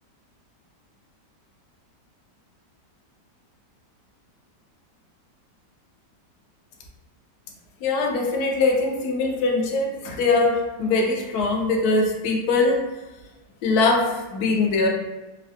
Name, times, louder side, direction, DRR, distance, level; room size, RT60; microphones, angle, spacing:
voice 1, 7.8-12.8 13.6-14.9, left 3 dB, 70° left, 0 dB, 1.0 m, -22 dB
3.2 x 2.2 x 2.4 m, 1.1 s
omnidirectional pair, 1.9 m